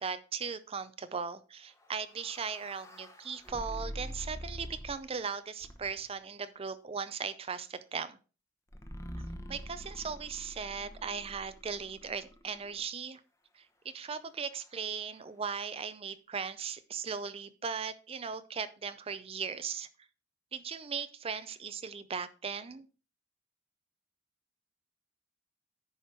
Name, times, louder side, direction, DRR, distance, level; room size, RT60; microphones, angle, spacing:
voice 1, 0.0-8.2 9.5-13.2 13.5-19.9 20.5-22.9, right 6 dB, 30° right, 13 dB, 0.5 m, -38 dB
sound 1, 1.8-5.1 5.6-6.1 8.7-12.8, equal, 15° left, 0.9 m, -45 dB
10.0 x 4.9 x 4.5 m, 0.35 s
head